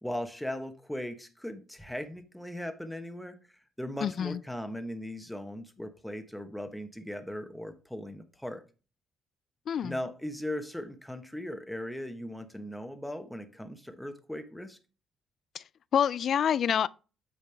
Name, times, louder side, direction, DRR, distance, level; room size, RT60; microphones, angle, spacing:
voice 1, 0.0-8.6 9.8-14.8, left 1 dB, 5° left, 1.1 m, -38 dB
voice 2, 4.0-4.4 9.7-9.9 15.5-15.6 15.9-16.9, left 8 dB, 60° left, 0.3 m, -27 dB
8.3 x 5.3 x 3.4 m
cardioid pair, 90°, 0 cm